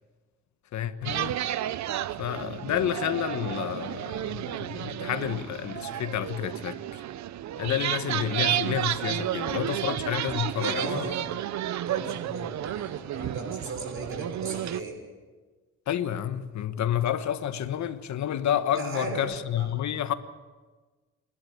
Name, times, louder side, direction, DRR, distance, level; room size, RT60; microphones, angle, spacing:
voice 1, 0.7-1.4 2.2-7.0 7.6-10.9 15.9-20.1, left 10 dB, 65° left, 1.4 m, -30 dB
sound 1, 1.0-14.8, right 12 dB, 65° right, 0.7 m, -32 dB
voice 2, 10.5-11.2 11.8-15.0 18.7-19.2 19.6-19.7, right 2 dB, 45° right, 6.1 m, -36 dB
26.5 x 11.5 x 8.8 m
cardioid pair, 90°, 30 cm